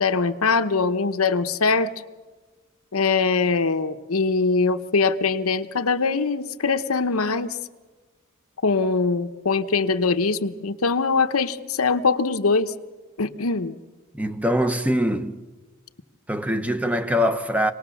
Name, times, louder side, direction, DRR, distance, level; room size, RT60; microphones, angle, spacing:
voice 1, 0.0-1.9 2.9-7.6 8.6-12.7 13.2-13.8, left 4 dB, 85° left, 1.0 m, -22 dB
voice 2, 14.1-15.4 16.3-17.7, equal, 5° right, 0.8 m, -23 dB
26.0 x 19.5 x 7.0 m
head